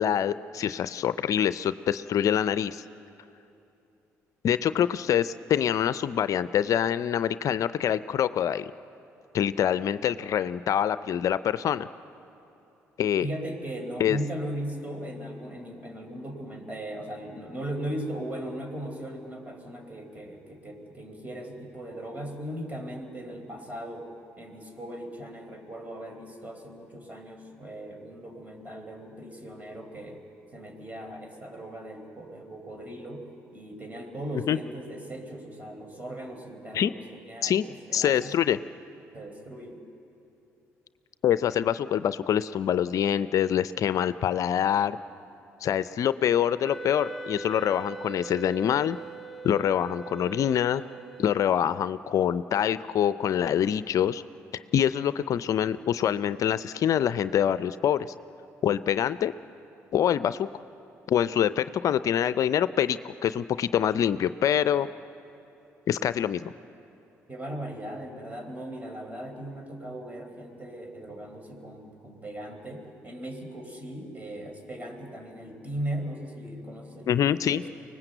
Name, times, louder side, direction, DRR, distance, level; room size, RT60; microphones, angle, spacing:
voice 1, 0.0-2.8 4.4-8.7 9.3-11.9 13.0-13.3 14.0-14.2 34.5-34.6 36.7-36.9 37.4-37.6 37.9-38.6 41.2-45.0 45.6-49.0 49.4-50.8 51.2-54.2 54.7-58.1 58.6-59.3 59.9-60.5 61.1-64.9 65.9-66.5 77.1-77.6, left 9 dB, 60° left, 14 dB, 0.5 m, -25 dB
voice 2, 13.2-30.2 30.5-33.3 33.5-37.6 37.9-38.4 39.1-39.8 67.3-77.7, right 1 dB, 25° right, 5 dB, 4.3 m, -38 dB
Wind instrument woodwind instrument, 46.6-51.8, right 4 dB, ahead, 1.0 m, -41 dB
24.5 x 19.5 x 7.9 m, 2.9 s
hypercardioid pair, 55°, 6 cm